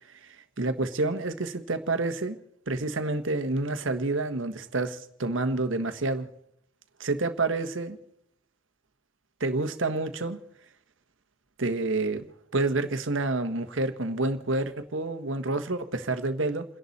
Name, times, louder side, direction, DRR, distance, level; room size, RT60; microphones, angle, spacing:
voice 1, 0.2-2.4 2.7-6.3 7.0-8.0 9.4-10.4 11.6-12.3 12.5-16.7, right 2 dB, 70° right, 8 dB, 1.3 m, -28 dB
29.5 x 11.0 x 4.2 m, 0.77 s
head